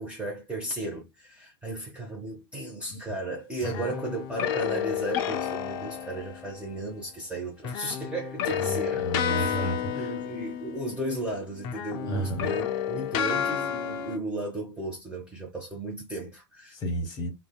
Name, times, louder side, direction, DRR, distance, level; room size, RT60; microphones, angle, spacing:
voice 1, 0.0-9.0 9.4-16.7, right 2 dB, 5° right, 0.7 m, -35 dB
sound 1, 3.6-6.7 7.6-11.3 11.6-14.2, left 9 dB, 45° left, 0.4 m, -31 dB
voice 2, 8.6-10.1 12.0-12.5 16.7-17.3, right 1 dB, 25° left, 1.2 m, -32 dB
2.6 x 2.2 x 2.3 m
figure-of-eight pair, 100°, 16 cm